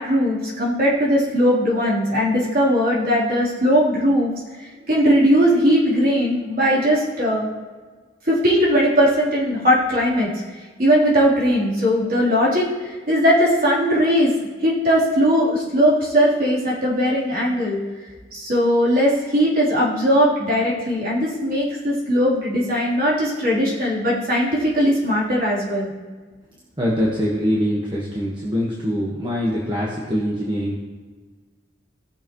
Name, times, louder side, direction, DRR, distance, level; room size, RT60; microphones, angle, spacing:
voice 1, 0.0-4.3 4.6-7.5 8.2-10.3 10.8-14.3 14.6-17.8 18.3-25.9, equal, 45° right, -7 dB, 3.4 m, -19 dB
voice 2, 26.8-30.8, equal, 25° right, -5 dB, 1.3 m, -23 dB
18.0 x 6.9 x 3.1 m, 1.4 s
head